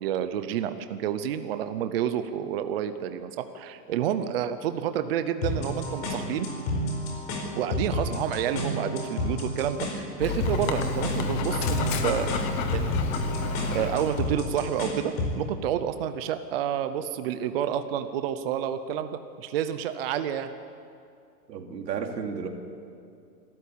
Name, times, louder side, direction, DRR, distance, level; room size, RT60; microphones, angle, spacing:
voice 1, 0.0-6.5 7.6-12.3 12.7-12.9 13.7-20.5, right 9 dB, 35° right, 10 dB, 0.7 m, -29 dB
sound 1, 5.4-15.4, left 1 dB, 40° left, 4.9 m, -31 dB
Dog, 10.2-14.4, left 3 dB, 15° left, 0.7 m, -29 dB
voice 2, 21.5-22.5, right 6 dB, 90° right, 3 dB, 2.9 m, -33 dB
26.0 x 13.5 x 8.6 m, 2.4 s
supercardioid pair, 170°, 49 cm